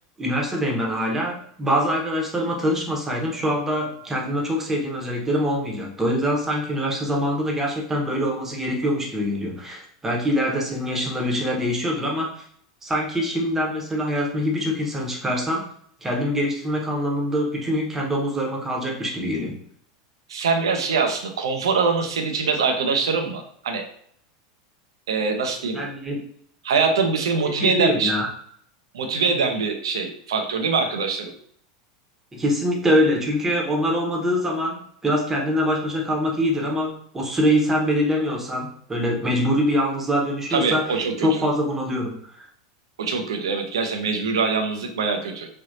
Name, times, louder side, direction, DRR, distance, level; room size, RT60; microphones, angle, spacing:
voice 1, 0.2-12.4 12.8-15.7 16.0-19.6 25.7-26.2 27.4-28.3 32.3-40.9 41.2-42.3, equal, 15° right, -1 dB, 0.9 m, -24 dB
voice 2, 20.3-23.8 25.1-25.8 26.6-28.1 28.9-31.3 40.5-41.4 43.0-45.5, right 4 dB, 70° right, 4 dB, 0.6 m, -23 dB
3.4 x 2.7 x 2.7 m, 0.64 s
figure-of-eight pair, 85°, 3 cm